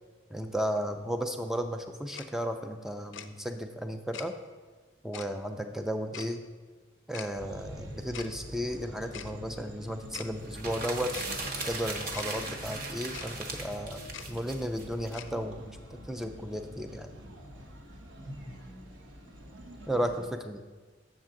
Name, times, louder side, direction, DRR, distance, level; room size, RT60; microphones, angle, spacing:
voice 1, 0.3-4.3 5.0-6.4 7.1-11.1 11.7-14.0 14.3-17.1 19.9-20.6, equal, ahead, 6 dB, 0.3 m, -34 dB
Tick-tock, 2.1-2.3 3.1-3.3 4.1-4.3 5.1-5.3 6.1-6.3 7.1-7.3 8.1-8.3 9.1-9.3 10.1-10.3 11.1-11.3 12.1-12.3 13.1-13.3 14.1-14.3 15.1-15.3, left 9 dB, 70° left, 0.4 m, -42 dB
sound 1, 7.3-20.3, equal, 80° right, 1.0 m, -46 dB
sound 2, 10.4-15.1, right 3 dB, 45° right, 0.9 m, -38 dB
7.9 x 6.3 x 3.8 m, 1.4 s
head